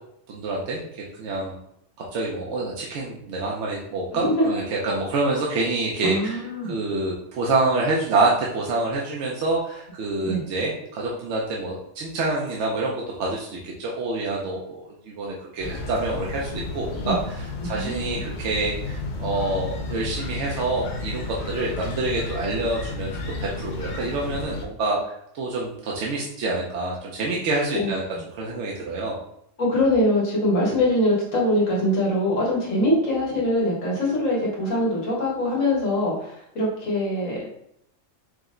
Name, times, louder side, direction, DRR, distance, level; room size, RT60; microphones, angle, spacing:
voice 1, 0.3-1.6 2.1-23.1 23.4-25.0 25.3-28.0 28.3-29.2, right 2 dB, 70° right, -3 dB, 0.9 m, -27 dB
voice 2, 4.1-4.5 6.0-6.8 10.2-10.4 17.0-17.2 17.6-18.2 27.7-27.9 29.6-37.5, left 1 dB, 85° left, -4 dB, 1.7 m, -23 dB
sound 1, 15.6-24.7, left 3 dB, 50° left, 0.6 m, -32 dB
4.9 x 2.1 x 3.6 m, 0.75 s
omnidirectional pair, 1.3 m